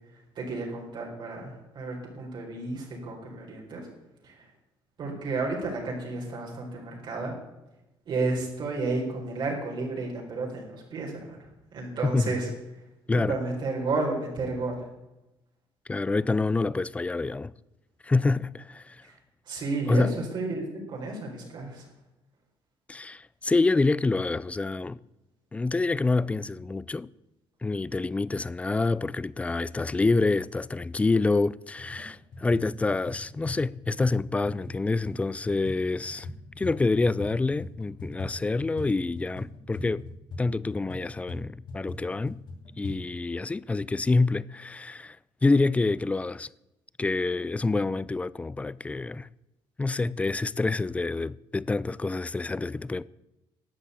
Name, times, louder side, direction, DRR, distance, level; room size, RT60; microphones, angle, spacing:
voice 1, 0.1-3.9 4.2-4.5 5.0-7.3 8.1-11.4 11.7-12.5 13.1-14.8 19.0-19.2 19.4-21.9, right 3 dB, 55° right, 4.2 m, -32 dB
voice 2, 12.0-12.3 13.1-13.3 15.9-17.5 18.0-19.0 19.9-20.1 22.9-25.0 25.5-27.1 27.6-36.3 36.6-40.0 40.4-42.4 42.8-45.2 45.4-46.5 47.0-49.3 49.8-53.0, left 3 dB, 15° left, 0.3 m, -27 dB
sound 1, 31.7-32.1 32.3-37.3 37.6-43.0, left 2 dB, 55° left, 3.4 m, -40 dB
12.5 x 8.4 x 8.1 m
cardioid pair, 125°, 10 cm